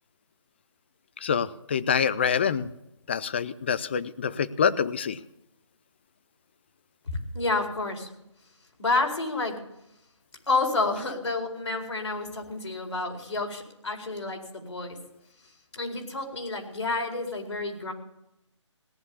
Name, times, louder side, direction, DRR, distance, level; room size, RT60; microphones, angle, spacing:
voice 1, 1.2-2.7 3.1-5.2, left 7 dB, 20° left, 16 dB, 0.5 m, -26 dB
voice 2, 7.1-8.1 8.8-9.6 10.5-15.0 15.7-17.9, left 3 dB, 65° left, 2 dB, 4.5 m, -29 dB
17.5 x 10.5 x 7.1 m, 0.83 s
figure-of-eight pair, 155°, 16 cm